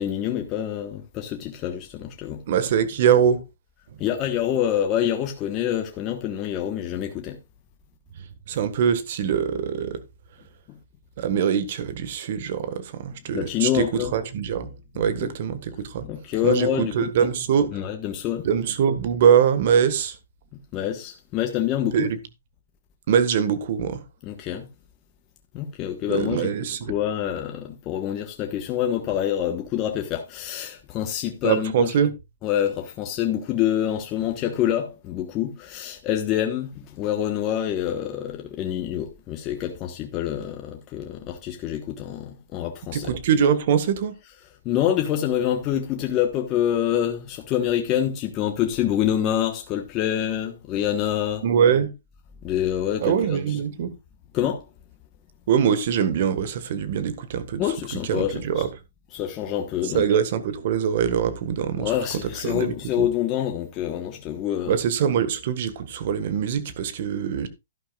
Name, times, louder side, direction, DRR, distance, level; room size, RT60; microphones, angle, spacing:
voice 1, 0.0-2.4 4.0-7.4 10.7-10.8 13.3-14.1 14.9-15.3 16.0-17.3 17.7-18.5 20.7-22.0 24.2-24.7 25.5-26.5 26.9-31.9 32.4-43.1 44.6-51.4 52.4-53.1 53.5-53.6 54.3-54.6 57.6-58.7 59.1-60.1 61.8-64.8, left 10 dB, 25° left, 1.2 m, -26 dB
voice 2, 2.5-3.5 3.9-4.0 8.5-10.0 11.2-16.0 16.4-17.8 18.4-20.2 21.9-22.2 23.1-24.0 26.1-26.9 31.4-32.1 42.9-44.2 51.4-51.9 53.0-53.9 55.5-57.6 58.0-58.7 59.8-62.0 62.2-63.1 64.7-67.5, right 8 dB, 50° right, 1.6 m, -23 dB
12.0 x 11.0 x 2.4 m
hypercardioid pair, 150°, 0 cm